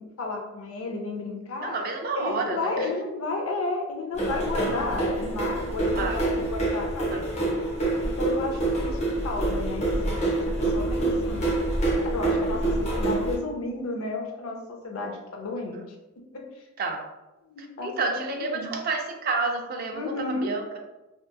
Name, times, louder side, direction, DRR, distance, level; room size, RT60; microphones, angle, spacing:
voice 1, 0.0-1.7 2.2-7.6 8.0-11.6 12.1-15.8 16.3-16.6 17.4-18.7 19.9-20.6, left 3 dB, 85° left, 1 dB, 0.5 m, -33 dB
voice 2, 1.6-2.9 3.3-3.5 5.9-6.2 7.0-7.3 15.7-15.9 16.8-17.0 17.8-20.8, right 3 dB, 45° right, 3 dB, 0.3 m, -30 dB
sound 1, 4.2-13.3, right 2 dB, 35° left, 0.6 m, -26 dB
2.7 x 2.3 x 2.2 m, 1.0 s
head